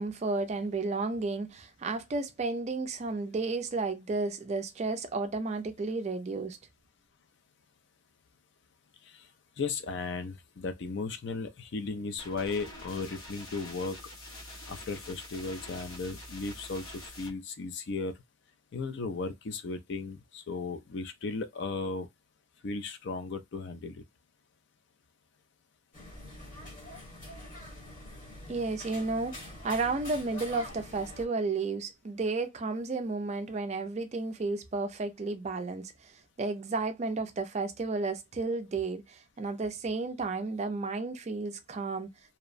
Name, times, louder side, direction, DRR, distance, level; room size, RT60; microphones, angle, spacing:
voice 1, 0.0-6.6 28.5-42.1, right 3 dB, 30° right, 0.3 m, -32 dB
voice 2, 9.6-14.0 14.7-18.1 18.7-22.1 22.6-24.0, left 4 dB, 55° left, 0.4 m, -36 dB
sound 1, 12.2-17.3, left 1 dB, 75° left, 0.9 m, -46 dB
sound 2, 25.9-31.2, left 1 dB, 40° left, 1.1 m, -45 dB
2.7 x 2.1 x 2.4 m
head